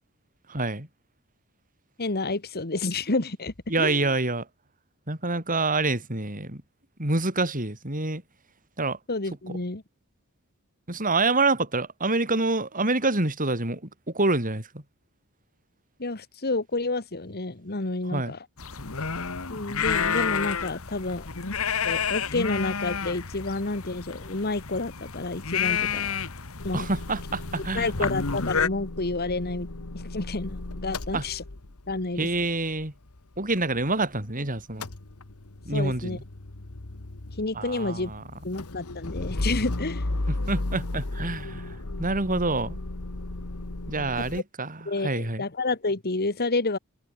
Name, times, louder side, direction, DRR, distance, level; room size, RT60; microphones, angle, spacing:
voice 1, 0.5-0.9 3.7-4.5 5.1-6.6 7.0-8.2 8.8-9.0 10.9-13.8 14.1-14.8 18.1-18.3 26.7-28.1 31.1-31.2 32.2-32.9 33.4-34.9 35.7-36.2 37.5-38.2 40.3-42.8 43.9-45.4, right 2 dB, 40° right, 5.6 m, -27 dB
voice 2, 2.0-4.1 9.1-9.8 16.0-18.4 19.5-21.3 21.8-26.1 26.6-26.9 27.8-29.7 29.9-31.4 31.9-32.3 35.7-36.2 37.4-38.1 38.4-40.0 44.3-44.4 44.9-46.8, left 3 dB, 45° left, 1.8 m, -29 dB
sound 1, 18.6-28.7, left 6 dB, 65° left, 1.7 m, -30 dB
Motor vehicle (road) / Engine starting / Idling, 26.6-34.3 34.6-44.4, left 2 dB, 80° left, 1.6 m, -35 dB
open air
head